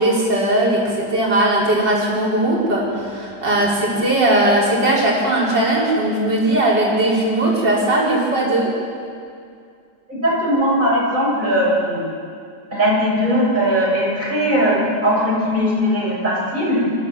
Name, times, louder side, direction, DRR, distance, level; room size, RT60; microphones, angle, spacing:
voice 1, 0.0-8.7, right 1 dB, 85° right, -5 dB, 5.7 m, -18 dB
voice 2, 10.1-12.0 12.7-16.8, equal, 25° right, -6 dB, 7.3 m, -19 dB
27.0 x 16.0 x 7.7 m, 2.3 s
omnidirectional pair, 1.9 m